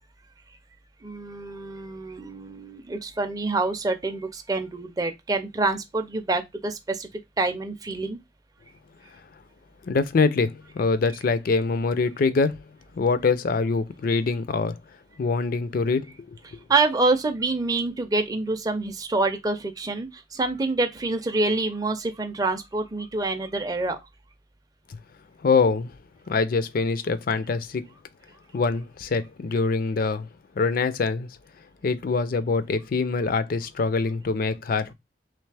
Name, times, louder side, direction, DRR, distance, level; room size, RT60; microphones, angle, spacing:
voice 1, 1.0-7.1 7.4-8.2 16.5-24.0, right 3 dB, 20° right, 0.4 m, -26 dB
voice 2, 9.8-12.6 12.9-14.8 15.2-16.4 25.4-25.9 26.3-27.8 28.5-30.3 30.6-31.3 31.8-34.9, left 4 dB, 50° left, 0.4 m, -24 dB
3.2 x 3.1 x 3.3 m
head